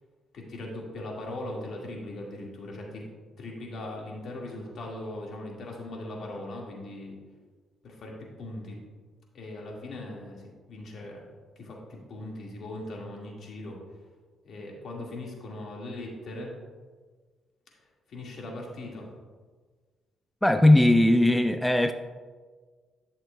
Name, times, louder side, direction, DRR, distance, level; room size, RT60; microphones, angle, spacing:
voice 1, 0.3-3.1 3.4-7.2 7.8-8.8 9.3-11.3 11.6-13.8 14.4-16.5 18.1-19.1, left 1 dB, 65° left, -1 dB, 1.8 m, -39 dB
voice 2, 20.4-21.9, left 1 dB, 5° left, 8 dB, 0.3 m, -19 dB
12.0 x 6.4 x 2.2 m, 1.5 s
cardioid pair, 90°, 0 cm